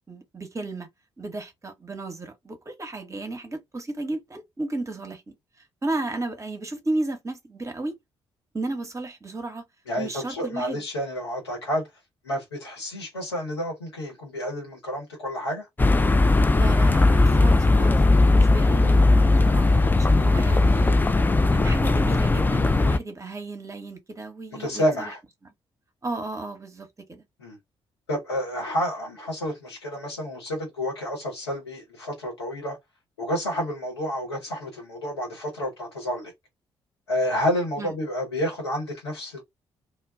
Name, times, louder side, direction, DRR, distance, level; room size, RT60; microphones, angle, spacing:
voice 1, 0.1-0.9 1.2-5.3 5.8-8.0 8.5-9.6 10.0-10.8 16.5-18.0 18.4-21.0 21.5-25.1 25.4-25.5 26.0-27.2 37.8-38.0, right 2 dB, 20° right, 0.8 m, -34 dB
voice 2, 9.9-11.8 12.2-15.6 24.6-25.2 27.4-27.6 28.1-32.8 33.2-36.3 37.1-39.4, equal, 80° left, 0.9 m, -29 dB
sound 1, 15.8-23.0, left 2 dB, 15° left, 0.3 m, -18 dB
2.2 x 2.0 x 3.5 m
figure-of-eight pair, 40°, 13 cm